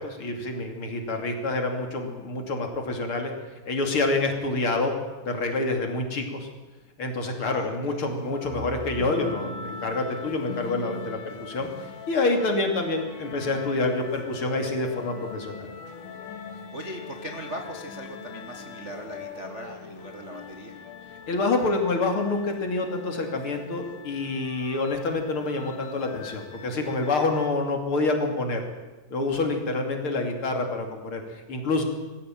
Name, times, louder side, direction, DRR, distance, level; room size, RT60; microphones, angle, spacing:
voice 1, 0.0-3.3 3.7-4.9 5.2-6.5 7.0-11.7 12.1-15.7 21.3-28.6 29.1-31.8, left 2 dB, 40° left, 4 dB, 3.1 m, -27 dB
voice 2, 7.4-8.0 16.5-20.7 27.3-27.4, right 1 dB, 75° right, 3 dB, 0.6 m, -39 dB
sound 1, 8.1-27.5, left 4 dB, 85° left, 3.8 m, -41 dB
21.5 x 16.0 x 9.1 m, 1.3 s
omnidirectional pair, 4.0 m